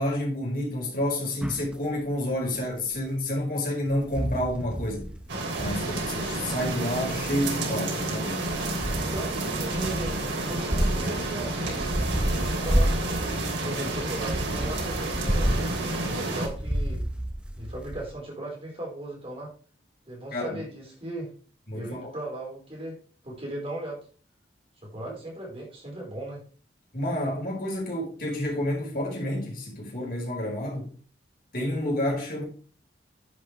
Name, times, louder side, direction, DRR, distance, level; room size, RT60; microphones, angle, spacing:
voice 1, 0.0-5.1 5.6-8.4 20.3-20.6 21.7-22.1 25.0-25.1 26.9-30.9 31.5-32.4, left 1 dB, 50° left, 5.0 m, -29 dB
sound 1, 1.4-1.8 3.0-3.1 3.9-18.1, equal, 5° right, 0.9 m, -31 dB
sound 2, 5.3-16.5, right 2 dB, 85° right, 3.1 m, -30 dB
voice 2, 8.9-11.6 12.2-15.5 16.1-17.0 17.6-19.5 20.1-21.3 21.7-23.0 23.2-24.0 24.8-26.4, right 1 dB, 30° right, 4.4 m, -37 dB
10.5 x 8.7 x 3.3 m
head